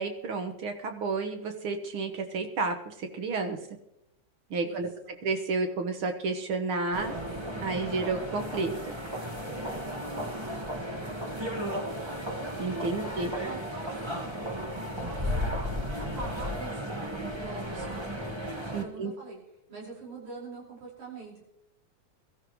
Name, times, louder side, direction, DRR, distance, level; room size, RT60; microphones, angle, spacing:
voice 1, 0.0-3.6 4.5-4.9 5.2-7.1 7.6-9.0 12.6-13.3 18.7-19.1, right 3 dB, 55° right, 5 dB, 1.7 m, -31 dB
voice 2, 4.6-5.1 9.5-11.8 13.0-14.4 15.0-15.5 15.9-18.1 18.5-19.4 19.7-21.4, right 3 dB, 70° right, -4 dB, 6.9 m, -45 dB
sound 1, 6.9-18.8, equal, 30° right, 0.5 m, -34 dB
22.5 x 14.0 x 3.1 m, 0.81 s
omnidirectional pair, 3.5 m